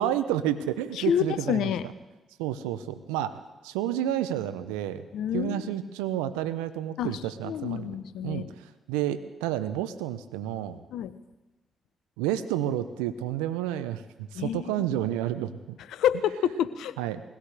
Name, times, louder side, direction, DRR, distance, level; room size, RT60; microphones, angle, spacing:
voice 1, 0.0-1.7 2.4-5.0 5.3-7.9 8.2-10.8 12.2-15.8 17.0-17.2, right 11 dB, 85° right, 11 dB, 0.5 m, -30 dB
voice 2, 1.0-1.9 5.1-5.7 7.0-8.5 10.9-11.1 14.3-14.9 15.9-16.9, left 9 dB, 75° left, 14 dB, 0.7 m, -28 dB
21.0 x 16.5 x 3.4 m, 1.1 s
hypercardioid pair, 45°, 0 cm